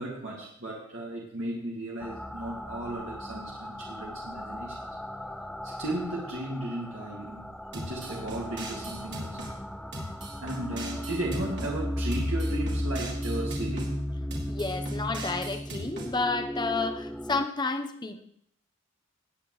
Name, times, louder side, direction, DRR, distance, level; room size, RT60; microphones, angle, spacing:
voice 1, 0.0-4.8 5.6-9.4 10.4-14.0, right 1 dB, 80° right, -4 dB, 2.2 m, -35 dB
sound 1, 2.0-17.5, equal, 5° left, 0.4 m, -35 dB
sound 2, 7.7-9.5 9.9-11.7 12.1-13.9 14.3-16.1, right 1 dB, 60° right, 3.4 m, -40 dB
voice 2, 14.5-18.2, left 3 dB, 20° left, 7 dB, 0.8 m, -31 dB
19.0 x 9.1 x 3.2 m, 0.69 s
head